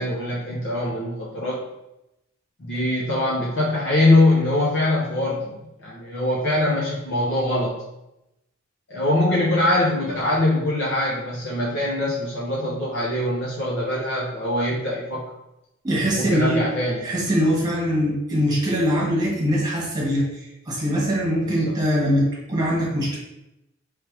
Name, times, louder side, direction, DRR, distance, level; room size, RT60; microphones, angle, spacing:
voice 1, 0.0-1.6 2.6-7.8 8.9-15.2 16.1-17.1 21.4-21.7, left 1 dB, 65° left, -6 dB, 0.9 m, -23 dB
voice 2, 15.8-16.6 17.0-20.2 20.7-23.2, equal, 20° right, -4 dB, 1.6 m, -22 dB
3.3 x 3.3 x 4.5 m, 0.89 s
head